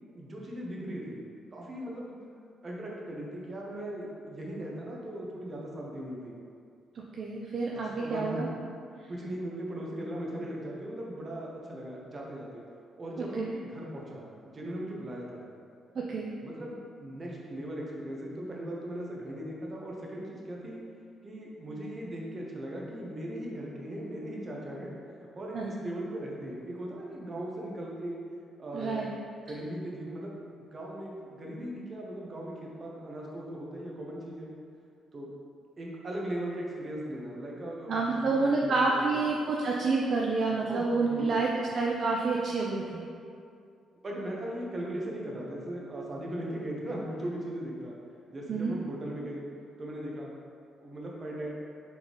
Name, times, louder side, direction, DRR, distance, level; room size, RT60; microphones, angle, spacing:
voice 1, 0.1-1.2 1.5-2.2 2.6-6.4 8.0-8.4 9.1-12.6 13.0-15.5 16.4-20.8 21.2-25.0 25.4-28.2 28.6-29.0 29.5-30.4 30.7-34.5 35.1-35.3 35.8-39.3 40.5-41.4 44.0-47.9 48.3-49.4 49.8-50.3 50.8-51.6, right 1 dB, 35° right, -3 dB, 0.8 m, -38 dB
voice 2, 6.9-8.5 13.3-13.5 16.0-16.4 25.5-25.8 28.7-29.1 37.9-43.0 48.5-48.7, right 3 dB, 55° right, -2 dB, 0.3 m, -28 dB
3.9 x 3.5 x 3.0 m, 2.4 s
cardioid pair, 90°, 0 cm